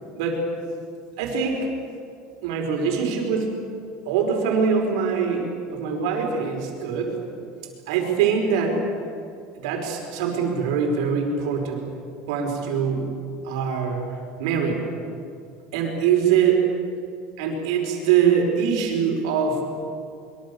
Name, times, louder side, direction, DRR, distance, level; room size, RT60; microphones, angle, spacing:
voice 1, 0.2-0.5 1.2-1.7 2.4-3.6 4.1-7.2 7.9-8.8 9.5-11.9 12.3-13.2 13.4-14.0 14.4-14.9 15.7-16.7 17.4-19.9, right 6 dB, 75° right, 2 dB, 5.3 m, -23 dB
24.0 x 23.5 x 7.1 m, 2.4 s
cardioid pair, 175°, 3 cm